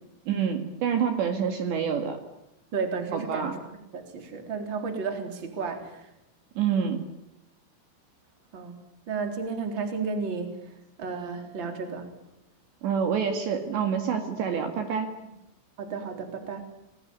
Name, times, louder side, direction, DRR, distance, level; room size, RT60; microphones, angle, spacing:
voice 1, 0.3-2.2 3.1-3.5 6.6-7.1 12.8-15.1, right 7 dB, 65° right, 5 dB, 3.9 m, -27 dB
voice 2, 2.7-6.1 8.5-8.8 9.1-10.6 11.0-12.1 15.2-15.3 15.8-16.7, right 5 dB, 25° right, 4 dB, 3.7 m, -33 dB
30.0 x 21.0 x 9.4 m, 0.87 s
omnidirectional pair, 6.0 m